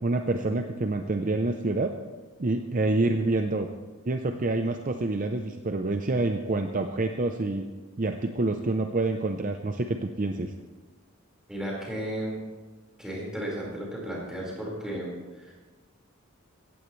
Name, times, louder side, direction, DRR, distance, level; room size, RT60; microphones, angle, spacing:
voice 1, 0.0-1.9 2.4-3.7 4.1-7.7 8.0-10.5, right 2 dB, 35° right, 6 dB, 0.6 m, -27 dB
voice 2, 11.5-12.4 13.0-15.5, right 1 dB, 5° right, -5 dB, 4.5 m, -34 dB
17.0 x 15.0 x 3.2 m, 1.3 s
head